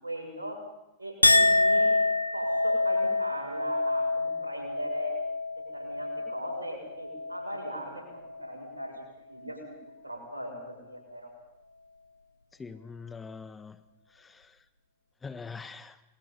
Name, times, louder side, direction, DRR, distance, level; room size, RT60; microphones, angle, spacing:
voice 1, 0.0-0.6 1.0-1.9 2.3-5.1 5.7-9.0 9.3-9.6 10.0-11.3, right 1 dB, 80° right, 1 dB, 7.0 m, -39 dB
Chink clink, 1.2-7.8 8.2-8.7, left 2 dB, 85° left, 0.9 m, -27 dB
voice 2, 12.6-13.8 14.1-14.6 15.2-16.0, left 5 dB, 15° left, 11 dB, 1.3 m, -43 dB
30.0 x 21.5 x 5.5 m, 0.92 s
figure-of-eight pair, 90°, 0 cm